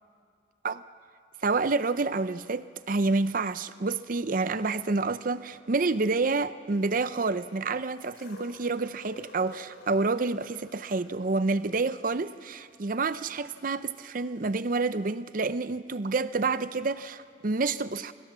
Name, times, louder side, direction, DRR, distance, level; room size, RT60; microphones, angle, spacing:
voice 1, 1.4-18.1, right 3 dB, 45° right, 14 dB, 0.6 m, -28 dB
sound 1, 8.0-14.0 14.9-15.0, left 2 dB, 75° left, 4.8 m, -52 dB
28.0 x 24.0 x 7.4 m, 2.3 s
head